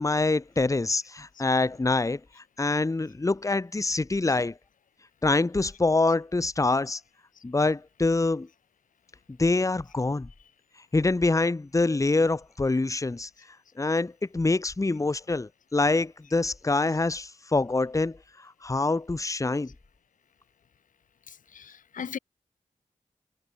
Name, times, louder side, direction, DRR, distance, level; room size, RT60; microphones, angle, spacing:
voice 1, 0.0-2.2 2.6-4.5 5.2-7.0 7.4-8.5 9.4-10.3 10.9-13.3 13.8-18.2 18.4-19.7, left 3 dB, 25° left, 0.7 m, -25 dB
voice 2, 21.5-22.2, left 7 dB, 85° left, 0.5 m, -38 dB
cardioid pair, 50°, 13 cm